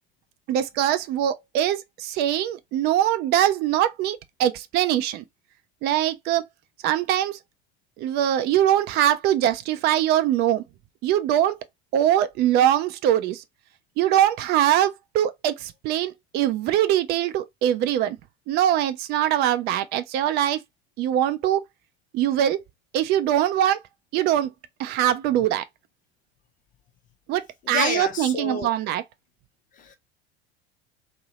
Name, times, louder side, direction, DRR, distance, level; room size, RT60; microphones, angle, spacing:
voice 1, 0.5-5.2 5.8-6.4 6.8-7.4 8.0-10.6 11.0-11.6 11.9-13.4 14.0-18.2 18.5-20.6 21.0-21.6 22.1-22.6 22.9-23.8 24.1-24.5 24.8-25.6 27.3-29.0, right 11 dB, 30° right, 0.4 m, -22 dB
voice 2, 27.7-28.7 29.8-30.0, left 5 dB, 25° left, 0.5 m, -29 dB
2.6 x 2.0 x 2.9 m
figure-of-eight pair, 70°, 32 cm